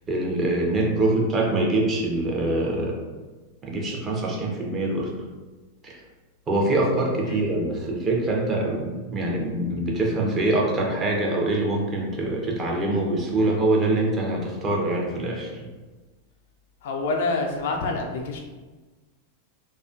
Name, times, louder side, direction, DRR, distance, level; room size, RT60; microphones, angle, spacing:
voice 1, 0.1-3.0 3.6-5.1 5.8-6.0 6.5-15.7, right 2 dB, 20° right, -2 dB, 0.5 m, -24 dB
voice 2, 16.8-18.4, left 3 dB, 55° left, 1 dB, 0.3 m, -27 dB
2.3 x 2.2 x 2.4 m, 1.3 s
figure-of-eight pair, 90°, 0 cm